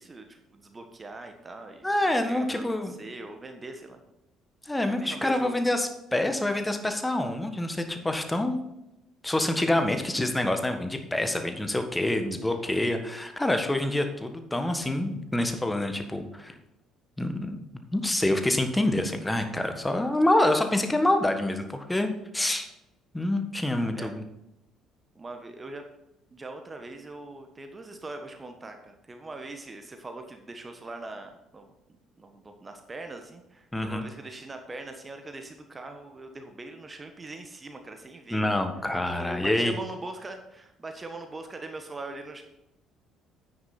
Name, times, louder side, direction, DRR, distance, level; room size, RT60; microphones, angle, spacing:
voice 1, 0.0-4.0 4.9-5.5 12.4-12.9 23.9-24.1 25.1-25.8 26.3-31.7 32.2-38.4 39.0-42.4, right 2 dB, 25° right, 6 dB, 1.3 m, -41 dB
voice 2, 1.8-2.9 4.6-8.6 9.2-16.5 17.2-17.6 17.9-22.7 23.1-24.2 33.7-34.0 38.3-39.7, left 1 dB, 10° left, 6 dB, 1.5 m, -26 dB
9.5 x 9.5 x 4.3 m, 0.89 s
figure-of-eight pair, 50°, 0 cm